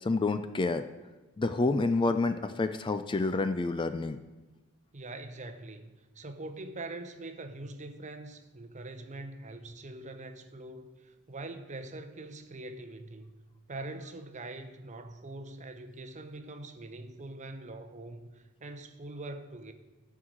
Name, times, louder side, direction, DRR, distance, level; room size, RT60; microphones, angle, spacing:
voice 1, 0.0-0.9 1.4-4.2, left 3 dB, 20° left, 0.3 m, -28 dB
voice 2, 4.9-13.3 13.7-19.7, right 2 dB, 35° right, 0.8 m, -43 dB
13.0 x 4.7 x 7.6 m
head